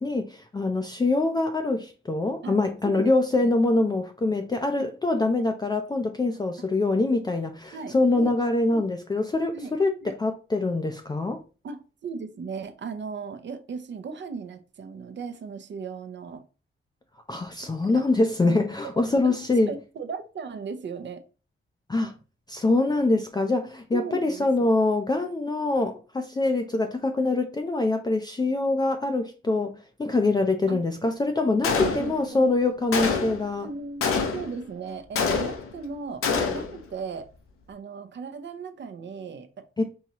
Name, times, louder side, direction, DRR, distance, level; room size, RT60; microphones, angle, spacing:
voice 1, 0.0-11.4 17.3-19.7 21.9-22.1 22.5-33.7 39.8-39.9, left 2 dB, 20° left, 0.4 m, -24 dB
voice 2, 2.8-3.5 4.7-4.9 5.3-5.5 7.7-8.4 8.7-8.8 9.5-9.7 10.0-10.1 11.6-16.4 17.9-18.1 18.4-18.9 19.2-19.4 19.7-21.2 23.9-24.7 30.7-30.8 31.8-32.6 33.0-37.3 37.7-39.8, right 5 dB, 60° right, 0.6 m, -37 dB
Gunshot gunfire, 31.6-32.4 32.9-33.5 34.0-34.6 35.2-35.8 36.2-36.8, left 5 dB, 85° left, 0.7 m, -26 dB
4.6 x 2.8 x 2.8 m
cardioid pair, 90°, 21 cm